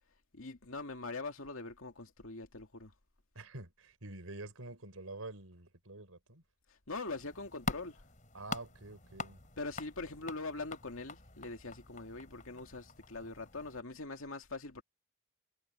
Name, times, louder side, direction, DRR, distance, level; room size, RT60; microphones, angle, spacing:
voice 1, 0.3-2.9 6.7-8.0 9.6-14.8, left 3 dB, 75° left, 2.3 m, -43 dB
voice 2, 3.3-6.4 8.3-9.4, right 2 dB, 90° right, 4.3 m, -47 dB
sound 1, 7.1-13.8, left 3 dB, 35° left, 4.5 m, -45 dB
head